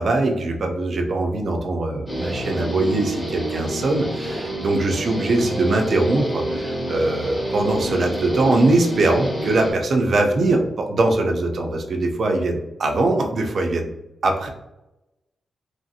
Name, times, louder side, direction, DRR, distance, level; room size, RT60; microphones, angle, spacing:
voice 1, 0.0-13.9 14.2-14.5, right 2 dB, 60° right, 3 dB, 0.5 m, -21 dB
Guitar, 2.1-9.7, right 1 dB, 20° left, 0.9 m, -28 dB
3.0 x 2.5 x 2.6 m, 0.95 s
wide cardioid pair, 115°, 0 cm